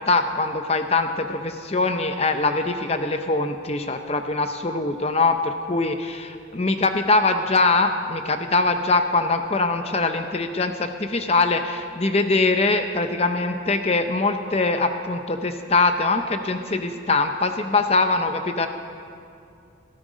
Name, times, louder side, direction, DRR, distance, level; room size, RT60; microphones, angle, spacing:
voice 1, 0.0-18.7, left 3 dB, 30° left, 7 dB, 0.7 m, -22 dB
19.0 x 14.0 x 5.1 m, 2.4 s
head